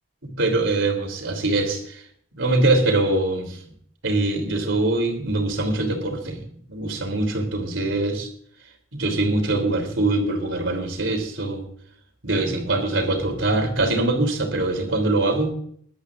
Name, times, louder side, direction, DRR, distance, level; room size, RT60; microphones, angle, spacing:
voice 1, 0.4-2.0 2.4-3.6 4.0-6.4 6.7-8.3 8.9-11.6 12.2-15.5, right 2 dB, 85° right, 4 dB, 3.3 m, -23 dB
22.0 x 12.0 x 2.5 m, 0.62 s
head